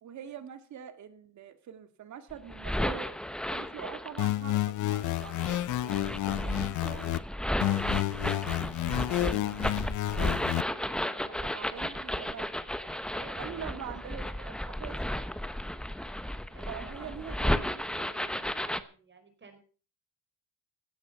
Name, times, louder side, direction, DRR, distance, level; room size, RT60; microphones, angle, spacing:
voice 1, 0.0-3.1 3.5-9.9 10.7-12.5 13.4-15.0 16.2-18.1, right 9 dB, 70° right, 9 dB, 2.2 m, -45 dB
wax paper slowed and turnt up, 2.3-4.3 5.0-18.8, left 1 dB, 5° left, 1.0 m, -34 dB
sound 1, 4.2-7.2 7.6-10.6, left 15 dB, 80° left, 0.7 m, -30 dB
voice 2, 12.8-14.5 16.5-19.6, right 4 dB, 40° right, 7 dB, 4.9 m, -51 dB
16.0 x 10.0 x 5.8 m, 0.39 s
cardioid pair, 90°, 30 cm